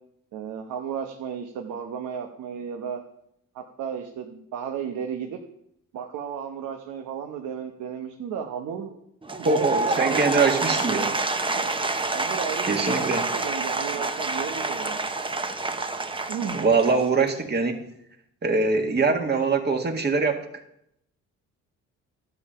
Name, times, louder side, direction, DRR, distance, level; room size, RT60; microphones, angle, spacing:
voice 1, 0.3-3.0 3.5-5.4 5.9-9.0 9.5-11.0 11.6-11.7 12.1-15.0 16.3-16.7, right 7 dB, 80° right, 4 dB, 1.0 m, -34 dB
Applause / Crowd, 9.2-17.4, right 3 dB, 15° right, 0.8 m, -28 dB
voice 2, 9.4-11.1 12.6-13.3 16.5-17.8 18.4-20.4, right 4 dB, 35° right, 4 dB, 1.7 m, -23 dB
12.0 x 7.2 x 5.6 m, 0.77 s
cardioid pair, 90°, 30 cm